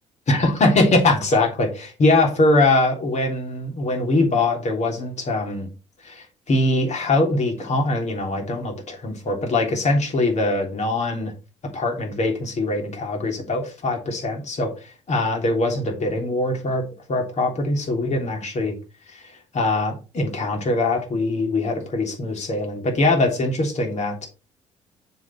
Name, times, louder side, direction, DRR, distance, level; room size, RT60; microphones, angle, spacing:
voice 1, 0.3-5.7 6.0-11.3 11.7-14.7 15.1-16.8 17.1-18.7 19.1-19.2 19.5-24.3, left 2 dB, 45° left, 2 dB, 3.3 m, -22 dB
7.1 x 6.4 x 4.3 m, 0.31 s
hypercardioid pair, 50°, 16 cm